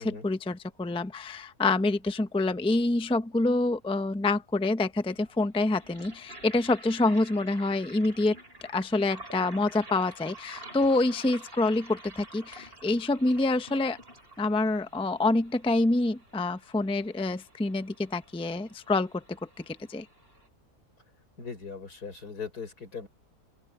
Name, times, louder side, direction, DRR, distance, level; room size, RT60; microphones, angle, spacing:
voice 1, 0.0-8.4 8.7-14.0 14.4-19.2 19.6-20.1, left 2 dB, 5° left, 0.5 m, -27 dB
sound 1, 4.1-4.2 5.1-20.5, right 1 dB, 40° right, 8.1 m, -50 dB
voice 2, 21.4-23.1, left 5 dB, 85° left, 5.5 m, -39 dB
open air
omnidirectional pair, 1.6 m